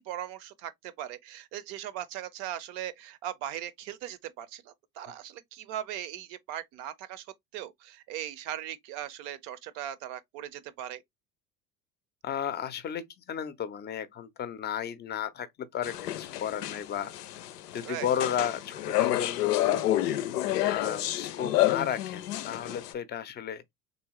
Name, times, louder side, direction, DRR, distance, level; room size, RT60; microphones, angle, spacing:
voice 1, 0.0-7.3 7.5-11.0 17.8-18.1, right 11 dB, 55° right, 0.7 m, -39 dB
voice 2, 12.2-17.1 17.7-20.1 20.6-23.6, left 9 dB, 20° left, 0.5 m, -34 dB
sound 1, 15.8-22.9, left 14 dB, 80° left, 0.6 m, -29 dB
3.4 x 2.8 x 3.0 m
hypercardioid pair, 75°, 47 cm